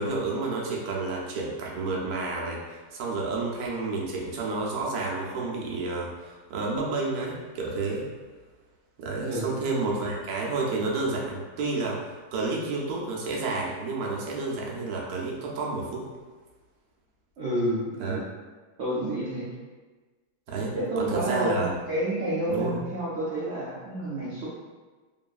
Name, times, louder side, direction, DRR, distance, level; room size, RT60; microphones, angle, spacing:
voice 1, 0.0-8.1 9.0-16.1 18.0-18.2 20.5-21.7 22.5-22.8, right 3 dB, 70° right, -3 dB, 1.0 m, -30 dB
voice 2, 17.4-18.2 18.8-19.5 20.7-24.5, right 1 dB, 85° right, -8 dB, 0.6 m, -29 dB
3.0 x 2.5 x 2.3 m, 1.3 s
omnidirectional pair, 1.9 m